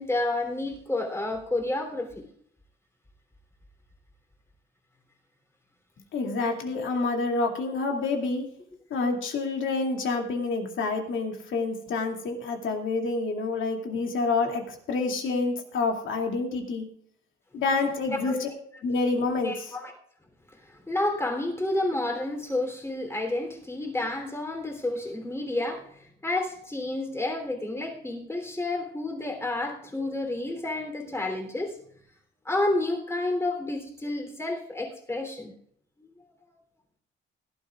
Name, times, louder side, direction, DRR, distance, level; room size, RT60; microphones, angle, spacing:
voice 1, 0.0-2.3 7.7-7.8 18.1-18.4 19.3-20.0 20.6-31.8 32.4-35.5 36.0-36.1, left 2 dB, 10° left, 3 dB, 3.2 m, -30 dB
voice 2, 6.1-8.5 8.9-16.8 17.5-18.5 18.8-19.5, left 3 dB, 70° left, 2 dB, 2.5 m, -28 dB
17.5 x 12.0 x 2.4 m, 0.63 s
cardioid pair, 105°, 21 cm